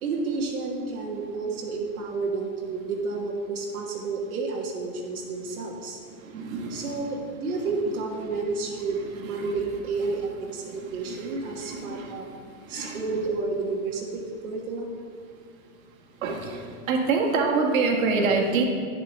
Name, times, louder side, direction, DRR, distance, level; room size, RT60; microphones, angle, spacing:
voice 1, 0.0-6.0 6.7-12.3 12.7-14.9, right 3 dB, 90° right, -2 dB, 1.3 m, -30 dB
voice 2, 6.3-6.8 9.3-9.5 11.6-12.1 12.7-13.0 16.2-16.6 16.9-18.6, right 4 dB, 70° right, 1 dB, 1.5 m, -25 dB
10.0 x 7.6 x 3.3 m, 2.3 s
hypercardioid pair, 130°, 42 cm